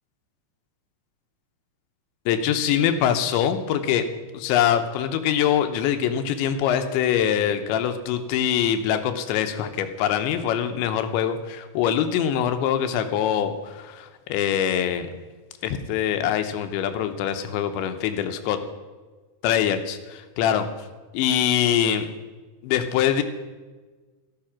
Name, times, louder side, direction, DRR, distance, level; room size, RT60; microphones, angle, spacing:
voice 1, 2.3-4.1 4.3-15.1 15.6-18.6 19.4-20.7 21.1-22.1 22.6-23.2, left 9 dB, 85° left, 8 dB, 3.2 m, -23 dB
14.0 x 12.5 x 5.9 m, 1.3 s
omnidirectional pair, 5.2 m